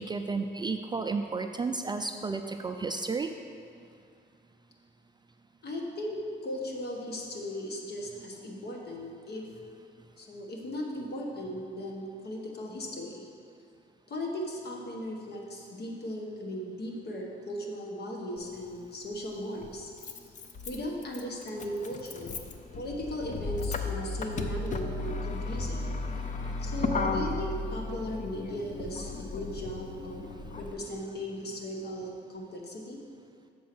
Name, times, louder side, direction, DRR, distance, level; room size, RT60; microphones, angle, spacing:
voice 1, 0.0-3.3 25.8-26.0 29.1-29.2, right 4 dB, 20° right, 6 dB, 0.3 m, -33 dB
voice 2, 5.6-9.5 10.2-13.3 14.1-19.9 20.7-22.4 22.7-25.9 26.6-30.2 30.6-33.0, equal, 55° left, 0 dB, 1.3 m, -37 dB
Motor vehicle (road), 18.4-18.5 19.6-30.7, left 3 dB, 40° left, 0.6 m, -35 dB
7.1 x 4.7 x 6.1 m, 2.4 s
cardioid pair, 90°, 20 cm